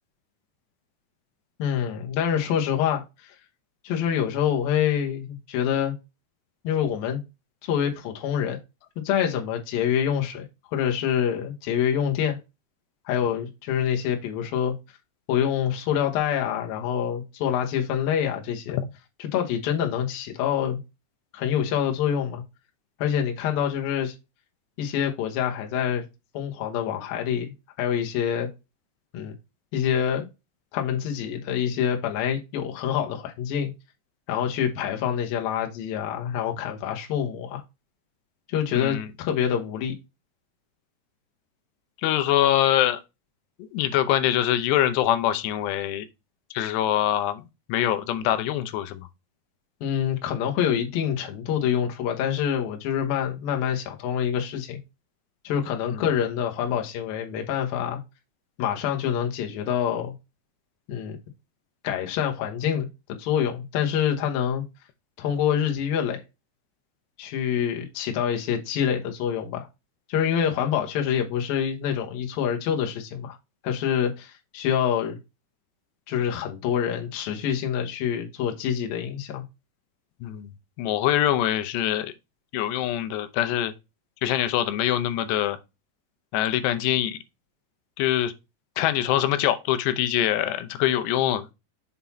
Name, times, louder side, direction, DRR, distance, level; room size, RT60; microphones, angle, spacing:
voice 1, 1.6-3.3 3.8-5.9 6.6-7.2 7.6-8.6 9.0-10.4 10.7-12.4 13.1-14.7 15.3-18.8 19.2-20.8 21.3-22.4 23.0-24.2 24.8-26.0 26.3-28.5 29.1-29.3 29.7-30.3 30.7-33.7 34.3-37.6 38.5-39.9 49.8-54.8 55.4-58.0 58.6-60.1 60.9-61.2 61.8-62.9 63.2-64.6 65.2-66.2 67.2-69.7 70.1-73.4 73.6-75.2 76.1-79.4, left 9 dB, 70° left, 2.6 m, -26 dB
voice 2, 38.7-39.1 42.0-43.0 43.7-46.1 46.5-47.4 47.7-49.1 55.9-56.0 80.2-80.5 80.8-82.1 82.5-83.7 84.2-85.6 86.3-87.2 88.0-88.3 88.8-91.5, left 12 dB, 90° left, 2.9 m, -24 dB
7.1 x 3.9 x 4.2 m
omnidirectional pair, 4.7 m